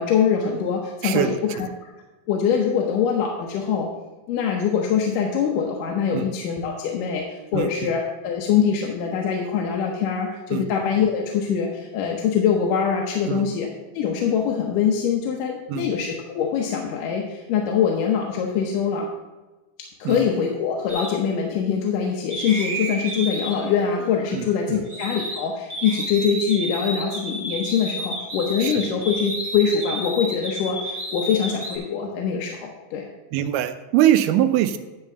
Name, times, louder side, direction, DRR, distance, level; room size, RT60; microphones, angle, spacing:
voice 1, 0.0-1.3 2.3-3.9 4.3-13.7 13.9-19.1 20.0-33.1, left 7 dB, 80° left, 0 dB, 2.4 m, -23 dB
voice 2, 1.0-1.4 6.1-6.3 7.5-7.7 10.5-10.6 13.3-13.4 15.7-15.9 20.0-20.2 24.3-24.8 28.6-28.9 33.3-34.8, right 12 dB, 80° right, 10 dB, 2.0 m, -22 dB
sound 1, 20.9-21.1 22.3-25.4 25.7-31.8, right 1 dB, 30° right, 1.2 m, -31 dB
10.5 x 3.5 x 6.9 m, 1.1 s
omnidirectional pair, 3.8 m